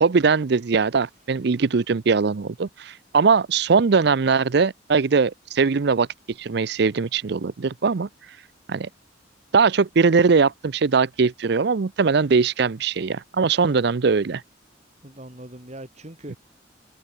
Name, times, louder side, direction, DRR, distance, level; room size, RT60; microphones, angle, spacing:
voice 1, 0.0-6.1 6.4-8.1 8.7-8.9 9.5-14.4, right 5 dB, 60° right, 0.5 m, -20 dB
voice 2, 15.0-16.4, right 1 dB, 35° right, 3.0 m, -41 dB
head